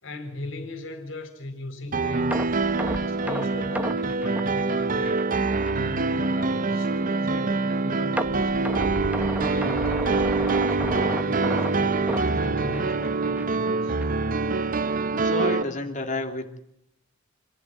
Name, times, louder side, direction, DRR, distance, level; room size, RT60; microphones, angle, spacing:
voice 1, 0.0-2.4 2.9-5.3 5.8-8.8 9.3-14.0, left 2 dB, 70° left, 4.2 m, -39 dB
Piano, 1.9-15.6, right 3 dB, 45° right, 0.8 m, -25 dB
sound 1, 2.3-5.3 5.7-5.8 6.3-6.4 8.2-13.1 13.4-13.6 14.0-14.1, right 1 dB, 5° right, 1.1 m, -33 dB
voice 2, 15.1-16.6, left 2 dB, 40° left, 3.0 m, -30 dB
27.0 x 14.0 x 9.4 m
head